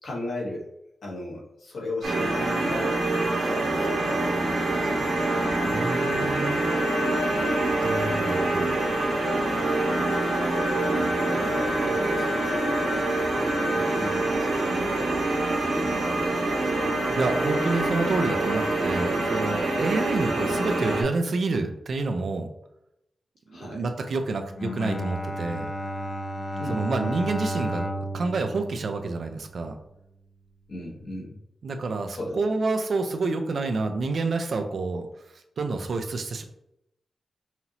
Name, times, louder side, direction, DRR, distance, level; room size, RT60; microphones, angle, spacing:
voice 1, 0.0-0.7 1.0-5.4 6.2-6.4 9.5-10.0 11.3-13.1 13.7-17.2 20.1-20.5 23.5-23.8 26.6-27.1 30.7-31.4 32.1-32.4, left 1 dB, 70° left, -4 dB, 1.5 m, -37 dB
sound 1, 2.0-21.0, right 2 dB, 85° right, 1.5 m, -25 dB
voice 2, 5.7-6.6 7.8-8.7 17.1-22.5 23.5-25.7 26.7-29.8 31.6-35.1 35.6-36.4, right 3 dB, 55° right, 6 dB, 0.5 m, -28 dB
Bowed string instrument, 24.5-29.8, equal, 35° left, 0.5 m, -33 dB
5.6 x 2.7 x 2.9 m, 0.81 s
wide cardioid pair, 160°, 0 cm